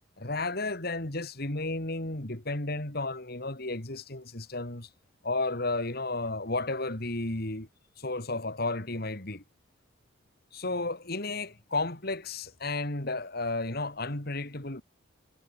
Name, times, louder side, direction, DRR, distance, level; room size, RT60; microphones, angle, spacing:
voice 1, 0.2-4.9 5.2-7.7 8.0-9.4 10.5-14.8, left 2 dB, 50° left, 3.0 m, -33 dB
head